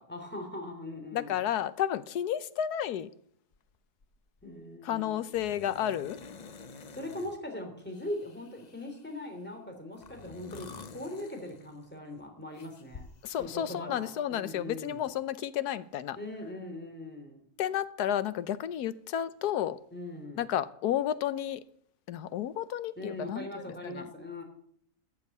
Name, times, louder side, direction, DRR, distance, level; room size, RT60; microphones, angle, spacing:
voice 1, 0.1-1.3 4.4-5.2 6.9-10.7 10.9-13.1 13.4-15.0 16.2-17.4 19.9-20.5 23.0-24.4, left 1 dB, 5° left, 2.9 m, -40 dB
voice 2, 1.1-3.1 4.8-6.2 13.2-16.2 17.6-19.8 20.4-21.6 22.1-24.1, left 10 dB, 85° left, 1.3 m, -32 dB
sound 1, 3.5-3.7 4.0-4.4 5.3-7.4 7.9-9.3 9.9-12.0 12.5-13.5, left 5 dB, 50° left, 0.5 m, -49 dB
14.0 x 7.5 x 8.2 m
omnidirectional pair, 1.7 m